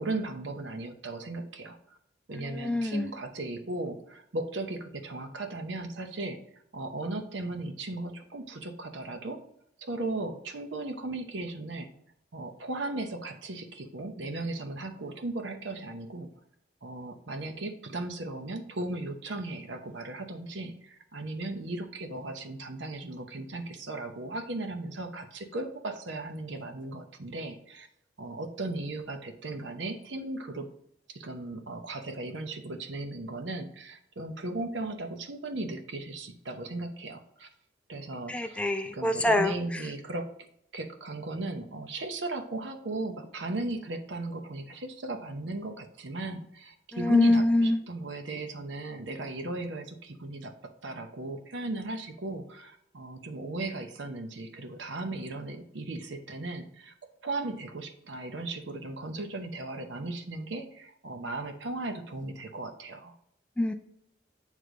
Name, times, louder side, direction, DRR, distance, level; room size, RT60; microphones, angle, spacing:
voice 1, 0.0-1.8 2.3-6.4 6.7-9.4 9.8-11.9 12.3-16.3 16.8-27.9 28.2-30.7 31.1-37.5 37.9-38.6 38.9-40.3 40.7-56.9 57.2-63.1, right 2 dB, 80° right, 6 dB, 0.8 m, -36 dB
voice 2, 2.4-3.1 38.3-39.5 47.0-47.8 63.6-63.7, left 1 dB, 5° left, 7 dB, 0.3 m, -24 dB
8.3 x 3.3 x 3.9 m, 0.74 s
head